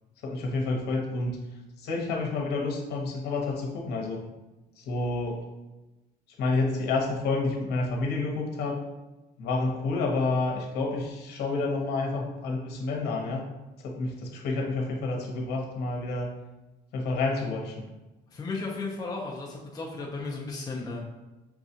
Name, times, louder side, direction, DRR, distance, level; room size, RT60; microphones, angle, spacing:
voice 1, 0.2-1.4 1.8-4.2 4.8-5.4 6.4-8.8 9.4-13.4 13.8-16.3 16.9-17.9, left 3 dB, 75° left, 0 dB, 1.0 m, -29 dB
voice 2, 18.3-21.0, left 3 dB, 25° left, -3 dB, 0.6 m, -34 dB
6.0 x 2.3 x 2.8 m, 1.1 s
cardioid pair, 110°, 17 cm